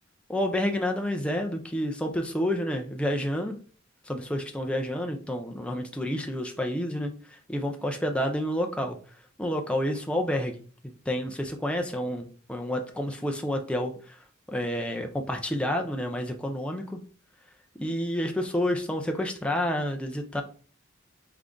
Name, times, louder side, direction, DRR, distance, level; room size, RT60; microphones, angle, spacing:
voice 1, 0.3-3.5 4.1-9.0 9.4-14.2 14.5-17.0 17.8-20.4, equal, 5° left, 3 dB, 0.4 m, -29 dB
3.8 x 3.5 x 3.6 m, 0.40 s
head